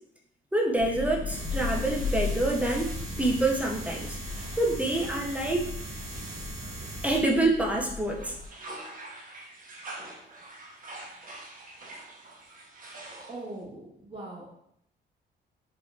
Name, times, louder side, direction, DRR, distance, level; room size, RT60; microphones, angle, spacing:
voice 1, 0.5-2.9 3.2-5.7 7.0-8.4, right 2 dB, 5° right, -1 dB, 0.6 m, -27 dB
Thunder / Rain, 0.8-8.5, left 4 dB, 40° left, 0.6 m, -37 dB
sound 1, 1.3-7.2, right 2 dB, 65° right, 1.4 m, -40 dB
sound 2, 1.5-7.7 8.0-13.6, right 2 dB, 45° right, 0.8 m, -47 dB
voice 2, 13.3-14.5, right 2 dB, 30° right, -4 dB, 1.1 m, -41 dB
3.6 x 2.7 x 2.3 m, 0.71 s
cardioid pair, 90°, 20 cm